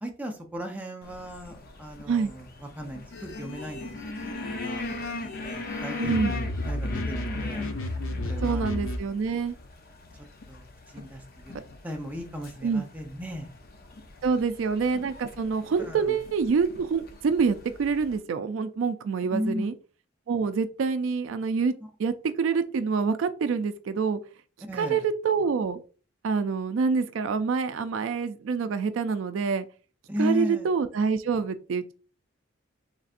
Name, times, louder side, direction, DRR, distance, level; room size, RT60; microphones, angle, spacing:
voice 1, 0.0-3.9 4.3-7.7 8.2-8.7 10.1-11.5 11.8-13.5 15.8-16.2 19.3-19.7 24.6-25.0 30.1-30.7, equal, 10° right, 2 dB, 0.6 m, -36 dB
sound 1, 1.0-18.2, left 2 dB, 50° left, 0.6 m, -41 dB
sound 2, 3.1-9.0, left 1 dB, 90° left, 0.7 m, -33 dB
voice 2, 6.0-6.3 8.4-9.6 12.6-12.8 14.2-19.7 20.3-21.7 22.0-24.2 24.7-25.8 26.2-29.7 30.2-31.9, right 5 dB, 70° right, 11 dB, 0.3 m, -26 dB
4.0 x 3.3 x 2.5 m, 0.36 s
head